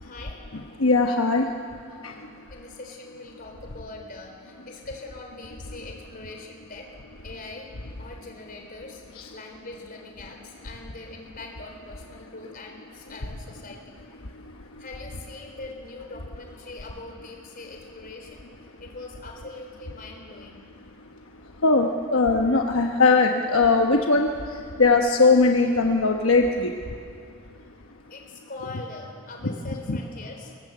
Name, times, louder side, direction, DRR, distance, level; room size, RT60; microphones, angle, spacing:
voice 1, 0.0-0.4 1.9-6.9 7.2-7.7 8.0-9.0 9.3-14.0 14.8-18.5 18.8-20.6 28.1-30.5, left 3 dB, 45° left, 2 dB, 3.9 m, -42 dB
voice 2, 0.5-1.8 2.0-2.5 9.1-9.3 14.2-14.8 21.0-21.2 21.5-27.0 29.9-30.0, left 3 dB, 75° left, 2 dB, 1.1 m, -21 dB
22.5 x 19.0 x 7.7 m, 2.4 s
head